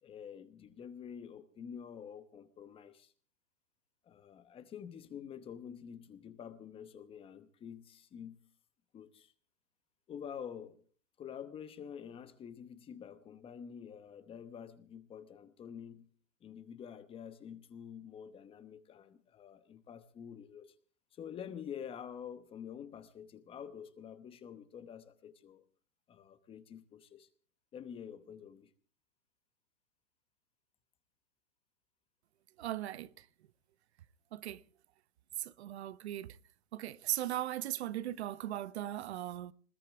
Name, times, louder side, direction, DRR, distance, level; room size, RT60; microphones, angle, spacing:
voice 1, 0.0-3.1 4.0-8.4 8.9-9.3 10.1-10.8 11.2-16.1 16.4-20.7 21.1-25.6 26.1-27.3 27.7-28.7, left 8 dB, 15° left, 0.9 m, -48 dB
voice 2, 32.6-33.2 34.3-34.6 35.4-36.4 36.7-39.5, right 13 dB, 55° right, 0.9 m, -38 dB
20.5 x 18.5 x 3.5 m
hypercardioid pair, 145°, 39 cm